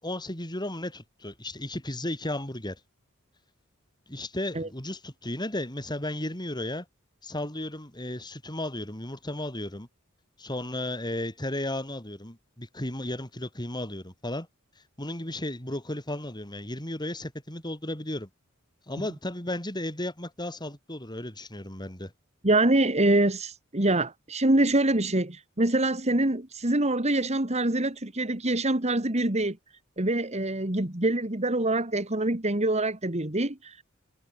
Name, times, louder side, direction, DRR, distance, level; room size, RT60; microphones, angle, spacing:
voice 1, 0.0-2.8 4.1-6.9 7.2-9.9 10.4-14.5 15.0-18.3 18.9-22.1, left 1 dB, 20° left, 5.6 m, -34 dB
voice 2, 22.4-29.6 30.0-33.8, right 2 dB, 35° right, 2.4 m, -25 dB
head